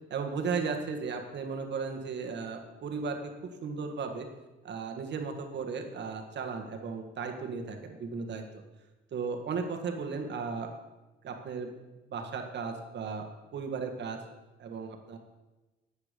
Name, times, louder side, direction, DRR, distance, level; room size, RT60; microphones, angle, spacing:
voice 1, 0.1-3.3 3.6-4.3 4.6-8.6 9.1-10.7 11.2-11.7 12.1-14.2 14.6-15.2, right 5 dB, 60° right, 4 dB, 1.7 m, -35 dB
12.0 x 8.3 x 5.2 m, 1.1 s
cardioid pair, 90°, 20 cm